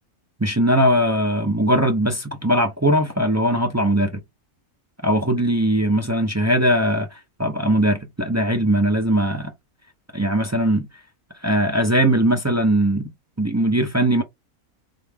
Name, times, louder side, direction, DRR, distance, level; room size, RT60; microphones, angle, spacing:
voice 1, 0.4-4.2 5.0-9.5 10.1-10.9 11.4-13.1 13.4-14.2, right 1 dB, 20° right, 0.4 m, -20 dB
3.8 x 3.4 x 3.4 m
omnidirectional pair, 1.5 m